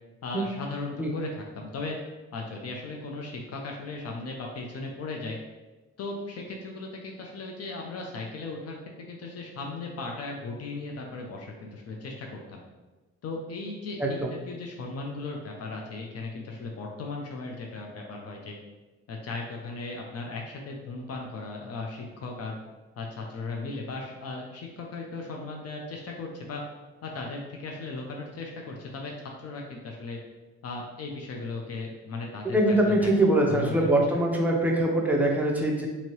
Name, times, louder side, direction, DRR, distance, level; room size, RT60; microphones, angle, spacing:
voice 1, 0.2-2.0 2.3-5.4 6.0-12.6 13.2-18.6 19.1-22.6 23.0-26.6 27.0-29.1 29.4-30.2 30.6-33.1 33.5-33.8, left 3 dB, 55° left, 0 dB, 0.5 m, -37 dB
voice 2, 14.0-14.3 32.5-35.9, right 1 dB, 5° right, -1 dB, 0.6 m, -23 dB
2.8 x 2.7 x 3.0 m, 1.2 s
cardioid pair, 90°, 30 cm